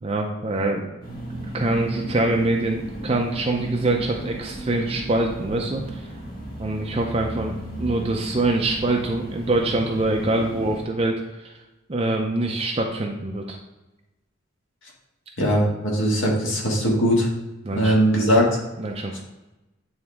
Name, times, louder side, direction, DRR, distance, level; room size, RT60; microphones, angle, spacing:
voice 1, 0.0-0.9 1.5-6.0 6.6-11.2 11.9-13.6 17.6-17.9 18.8-19.1, right 2 dB, 30° right, 1 dB, 0.5 m, -24 dB
sound 1, 1.0-10.8, right 1 dB, 45° left, 1.7 m, -35 dB
voice 2, 15.4-17.3 17.7-18.6, equal, 65° left, -2 dB, 1.7 m, -20 dB
8.7 x 3.5 x 3.5 m, 1.0 s
head